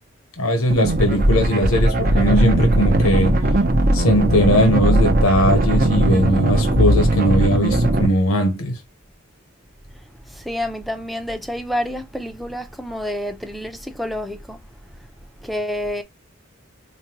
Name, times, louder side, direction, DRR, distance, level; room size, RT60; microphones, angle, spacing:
voice 1, 0.4-3.4 3.9-8.8, equal, 90° left, 0.9 m, -19 dB
sound 1, 0.7-8.1, right 1 dB, 40° right, 0.7 m, -18 dB
voice 2, 10.3-14.6 15.4-16.0, left 1 dB, ahead, 0.5 m, -28 dB
5.1 x 2.2 x 2.8 m
head